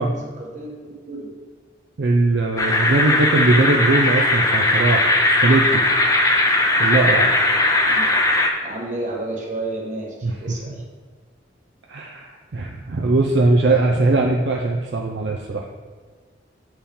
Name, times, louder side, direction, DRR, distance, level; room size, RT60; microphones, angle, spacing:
voice 1, 0.1-1.3 7.5-10.8, right 2 dB, 40° right, -2 dB, 1.2 m, -32 dB
voice 2, 2.0-5.8 6.8-7.3 10.2-10.3 10.7-10.8 11.9-15.7, right 2 dB, 65° right, 0 dB, 0.5 m, -20 dB
sound 1, 2.6-8.5, left 2 dB, 20° left, 0.4 m, -18 dB
7.1 x 4.4 x 3.5 m, 1.5 s
head